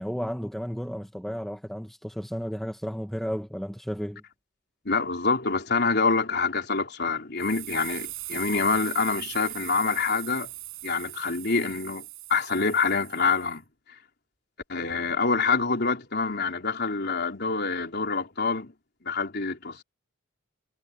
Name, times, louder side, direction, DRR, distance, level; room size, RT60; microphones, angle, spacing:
voice 1, 0.0-4.2, equal, ahead, 1.6 m, -33 dB
voice 2, 4.9-10.5 10.8-12.0 12.3-13.6 14.7-18.7 19.0-19.8, left 4 dB, 55° left, 4.0 m, -26 dB
sound 1, 7.4-13.6, right 17 dB, 90° right, 7.3 m, -40 dB
head